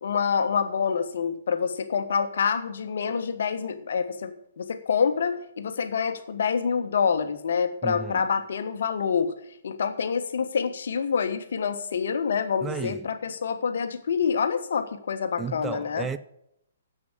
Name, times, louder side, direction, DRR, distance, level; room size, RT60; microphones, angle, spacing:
voice 1, 0.0-9.3 9.6-16.1, left 6 dB, 60° left, 1.4 m, -27 dB
voice 2, 7.8-8.3 12.6-13.1 15.4-16.2, right 6 dB, 10° right, 0.4 m, -33 dB
10.5 x 7.9 x 7.4 m
figure-of-eight pair, 120°, 0 cm